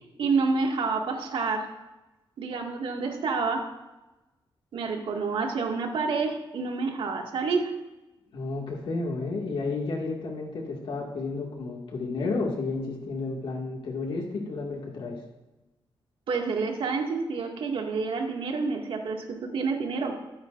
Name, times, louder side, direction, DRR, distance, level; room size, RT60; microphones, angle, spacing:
voice 1, 0.2-1.6 2.4-3.7 4.7-7.7 16.3-20.1, right 4 dB, 80° right, 1 dB, 2.2 m, -28 dB
voice 2, 8.3-15.2, left 3 dB, 75° left, -1 dB, 2.2 m, -32 dB
21.0 x 10.0 x 2.6 m, 1.0 s
wide cardioid pair, 175°, 9 cm